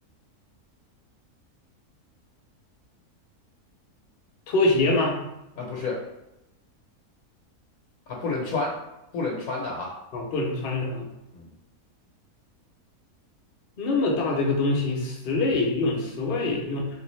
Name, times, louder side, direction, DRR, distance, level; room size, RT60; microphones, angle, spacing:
voice 1, 4.5-5.2 10.1-11.1 13.8-16.9, left 2 dB, 55° left, -1 dB, 0.7 m, -24 dB
voice 2, 5.6-6.0 8.1-8.8 9.1-9.9 11.3-11.5, left 3 dB, 70° left, -4 dB, 1.1 m, -29 dB
3.3 x 2.6 x 3.0 m, 0.91 s
omnidirectional pair, 1.6 m